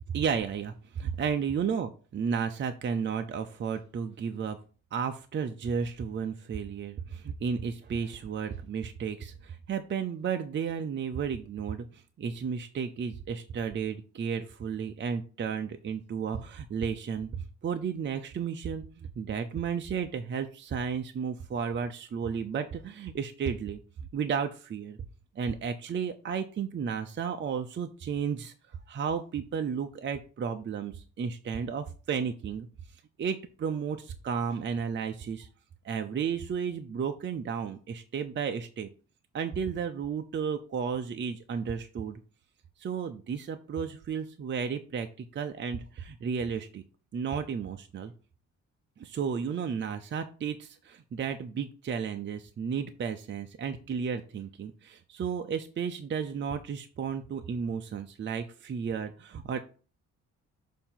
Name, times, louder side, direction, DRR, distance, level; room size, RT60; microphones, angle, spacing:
voice 1, 0.1-4.6 4.9-23.8 24.1-25.0 25.4-32.7 33.2-35.5 35.8-38.9 39.3-42.2 42.8-46.8 47.1-48.1 49.0-59.6, right 6 dB, 40° right, 6 dB, 0.6 m, -33 dB
6.7 x 2.8 x 5.7 m, 0.37 s
cardioid pair, 90°, 30 cm